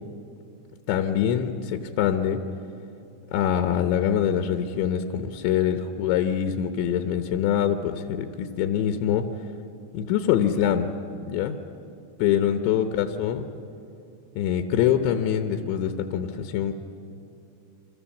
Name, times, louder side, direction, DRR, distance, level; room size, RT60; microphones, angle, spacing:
voice 1, 0.9-2.4 3.3-9.3 9.9-10.9 11.3-11.6 12.2-13.4 14.4-16.7, left 9 dB, 80° left, 6 dB, 3.2 m, -24 dB
29.0 x 25.5 x 7.2 m, 2.6 s
omnidirectional pair, 5.1 m